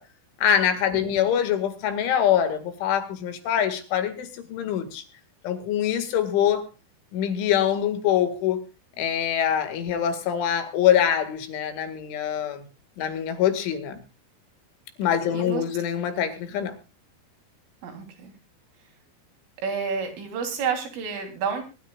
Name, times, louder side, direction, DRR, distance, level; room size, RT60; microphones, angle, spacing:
voice 1, 0.4-5.0 5.4-6.7 7.1-8.6 9.0-12.7 13.0-14.0 15.0-16.8, left 9 dB, 75° left, 8 dB, 4.3 m, -24 dB
voice 2, 0.9-1.3 15.3-15.6 17.8-18.3 19.6-21.6, right 6 dB, 90° right, 3 dB, 5.9 m, -30 dB
23.0 x 13.0 x 2.4 m, 0.30 s
omnidirectional pair, 5.6 m